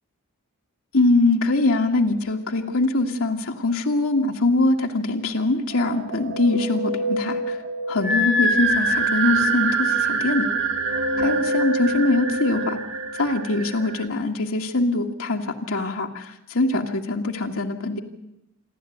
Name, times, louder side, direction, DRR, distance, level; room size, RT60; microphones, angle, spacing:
voice 1, 0.9-7.6 7.9-10.5 11.2-12.8 13.1-18.0, left 2 dB, 65° left, 2 dB, 1.7 m, -23 dB
sound 1, 5.7-14.0, right 2 dB, 55° right, 2.4 m, -25 dB
27.5 x 12.0 x 9.2 m, 0.87 s
head